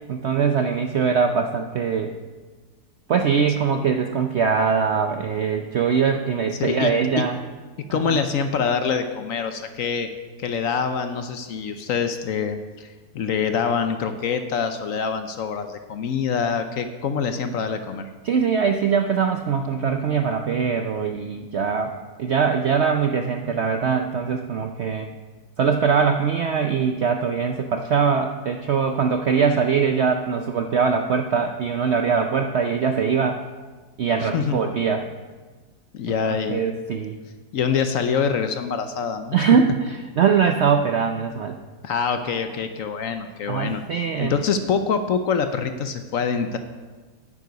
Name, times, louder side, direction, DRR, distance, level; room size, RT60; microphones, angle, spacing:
voice 1, 0.0-2.1 3.1-7.4 8.1-8.2 18.2-21.9 22.2-25.1 25.6-33.4 34.0-35.0 36.1-37.2 39.3-41.6 43.5-44.3, right 6 dB, 65° right, 5 dB, 0.6 m, -22 dB
voice 2, 6.6-7.2 7.9-10.1 10.4-18.1 34.2-34.6 35.9-36.6 37.5-39.4 41.8-43.8 44.2-46.6, left 6 dB, 65° left, 8 dB, 1.0 m, -25 dB
9.4 x 9.4 x 5.2 m, 1.4 s
omnidirectional pair, 1.7 m